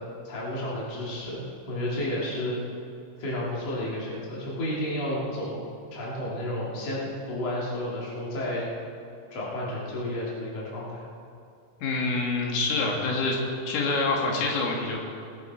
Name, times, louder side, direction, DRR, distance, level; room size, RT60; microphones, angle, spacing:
voice 1, 0.2-2.6 3.2-8.7 9.3-11.0, left 1 dB, 35° left, -6 dB, 3.6 m, -32 dB
voice 2, 11.8-13.4 13.7-15.0, left 3 dB, 85° left, -1 dB, 4.4 m, -26 dB
21.5 x 10.0 x 4.4 m, 2.5 s
omnidirectional pair, 5.7 m